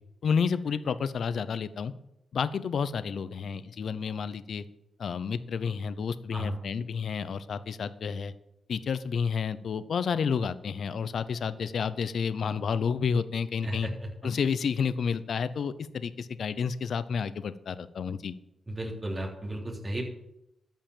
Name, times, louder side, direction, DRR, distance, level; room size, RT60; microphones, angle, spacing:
voice 1, 0.2-1.9 2.3-4.6 5.0-8.3 8.7-13.9 14.2-18.3, left 6 dB, 65° left, 14 dB, 0.7 m, -30 dB
voice 2, 13.6-13.9 18.7-20.0, right 1 dB, 30° right, -2 dB, 3.7 m, -34 dB
13.5 x 5.6 x 7.4 m, 0.83 s
cardioid pair, 85°, 0 cm